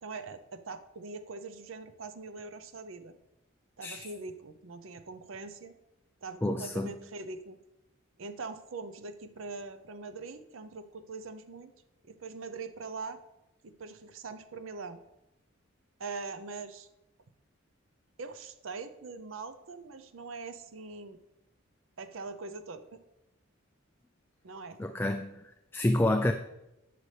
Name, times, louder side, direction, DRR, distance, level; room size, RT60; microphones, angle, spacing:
voice 1, 0.0-3.1 3.8-5.7 6.2-7.6 8.2-11.7 12.0-13.2 13.6-15.0 16.0-16.9 18.2-21.2 22.0-23.0 24.4-24.8, right 4 dB, 75° right, 11 dB, 0.6 m, -42 dB
voice 2, 6.4-6.9 24.8-25.2 25.7-26.3, left 1 dB, 10° left, 6 dB, 0.3 m, -28 dB
11.5 x 6.7 x 3.3 m, 0.92 s
head